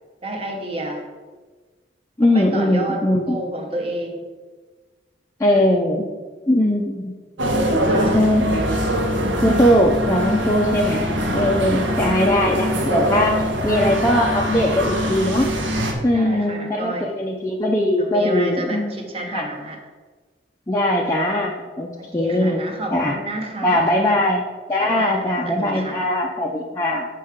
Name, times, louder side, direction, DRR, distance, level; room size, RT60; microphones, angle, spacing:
voice 1, 0.2-1.1 2.3-4.3 7.7-8.2 11.7-12.0 16.1-17.1 18.0-19.8 22.0-23.9 24.7-26.2, right 1 dB, 30° right, 2 dB, 1.0 m, -30 dB
voice 2, 2.2-3.4 5.4-6.1 6.5-7.1 8.1-8.7 9.4-11.1 11.3-15.5 16.0-19.0 19.3-19.5 20.7-22.6 22.9-23.2 23.6-24.4 24.7-27.1, left 1 dB, 15° left, -2 dB, 0.5 m, -20 dB
sound 1, 7.4-15.9, equal, 90° right, 1.1 m, -23 dB
7.1 x 4.6 x 5.0 m, 1.4 s
head